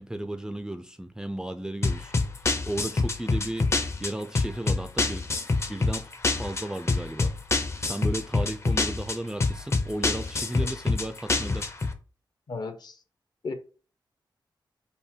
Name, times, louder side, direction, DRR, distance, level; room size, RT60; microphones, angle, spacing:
voice 1, 0.0-2.2 2.7-3.7 4.0-5.3 5.7-6.1 6.4-7.3 7.8-11.7, right 1 dB, 10° right, 0.3 m, -34 dB
sound 1, 1.8-11.9, left 3 dB, 35° left, 0.6 m, -27 dB
voice 2, 12.5-13.0 13.4-13.5, left 4 dB, 55° left, 0.9 m, -34 dB
5.4 x 2.2 x 4.3 m
wide cardioid pair, 110°, 8 cm